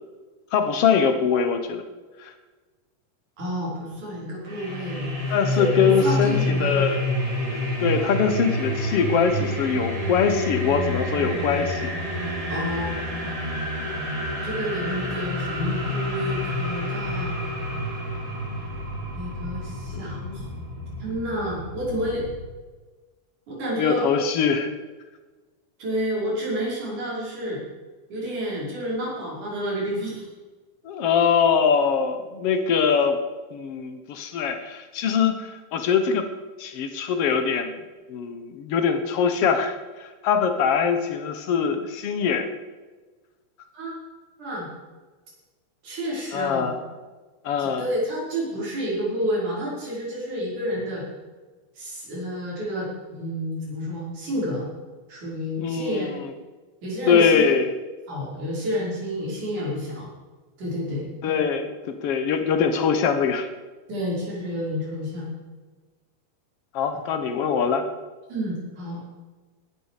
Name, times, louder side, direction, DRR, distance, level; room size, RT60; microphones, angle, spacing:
voice 1, 0.5-1.8 2.2-2.3 5.3-7.1 7.8-11.9 12.3-12.5 19.9-20.5 23.8-24.7 30.8-33.2 33.5-36.3 36.6-37.8 38.1-42.5 46.3-46.8 47.4-47.9 55.6-56.3 57.1-57.7 61.2-63.5 66.7-67.9, left 6 dB, 60° left, 7 dB, 1.8 m, -23 dB
voice 2, 3.4-6.9 12.5-12.9 14.4-17.4 19.1-20.4 21.0-22.2 23.5-24.1 25.8-27.6 28.1-30.3 43.7-43.9 44.4-44.7 45.8-46.7 47.6-51.0 51.8-54.7 55.1-56.1 56.8-57.4 58.1-60.1 60.6-61.1 63.9-65.3 68.3-69.0, equal, 65° right, -5 dB, 6.9 m, -29 dB
sound 1, 4.5-22.4, left 1 dB, 35° right, 5.1 m, -28 dB
18.0 x 12.5 x 5.0 m, 1.3 s
omnidirectional pair, 3.8 m